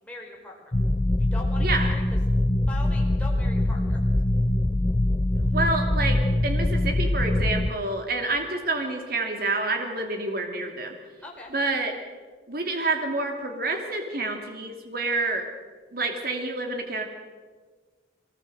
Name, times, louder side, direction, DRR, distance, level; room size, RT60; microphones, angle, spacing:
voice 1, 0.0-0.7 1.2-2.2 2.7-4.0 5.5-5.6 11.2-11.5, left 2 dB, 5° left, -1 dB, 4.5 m, -41 dB
sound 1, 0.7-7.7, left 1 dB, 25° left, 0.7 m, -23 dB
voice 2, 5.5-6.2 6.4-10.9 11.5-11.9 12.5-15.4 15.9-17.0, right 2 dB, 50° right, 4 dB, 2.8 m, -28 dB
23.5 x 20.0 x 7.9 m, 1.4 s
head